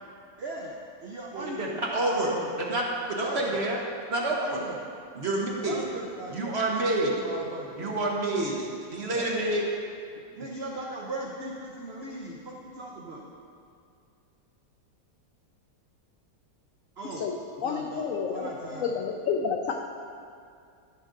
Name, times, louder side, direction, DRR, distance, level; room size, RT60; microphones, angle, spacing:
voice 1, 0.4-1.8 2.1-2.5 3.2-3.6 4.4-4.9 5.6-8.1 9.1-9.5 10.1-13.3 17.0-17.3 17.6-18.9, right 2 dB, 65° right, -1 dB, 0.6 m, -38 dB
voice 2, 1.3-1.7 1.9-2.8 3.1-3.8 4.1-4.6 5.1-5.8 6.3-7.1 7.8-9.6, right 2 dB, 45° right, -2 dB, 1.0 m, -28 dB
voice 3, 17.6-19.7, left 6 dB, 85° left, 3 dB, 0.7 m, -30 dB
12.5 x 5.2 x 3.8 m, 2.3 s
omnidirectional pair, 2.0 m